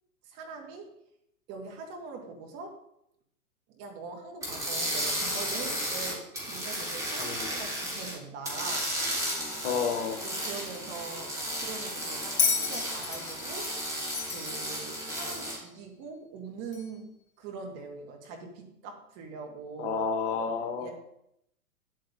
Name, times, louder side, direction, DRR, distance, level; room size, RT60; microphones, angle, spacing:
voice 1, 0.2-0.9 1.5-2.8 3.7-8.9 10.2-13.7 14.3-17.1 17.4-20.0 20.3-20.5 20.8-20.9, right 4 dB, 30° right, 2 dB, 2.2 m, -42 dB
sound 1, 4.4-8.1 8.4-15.6, equal, 5° right, 3.9 m, -34 dB
voice 2, 7.2-7.5 9.6-10.2 19.8-20.9, left 5 dB, 45° left, 6 dB, 1.4 m, -30 dB
Bell, 12.4-15.6 16.7-16.8, left 5 dB, 15° left, 1.5 m, -31 dB
10.0 x 8.7 x 3.8 m, 0.77 s
hypercardioid pair, 120°, 46 cm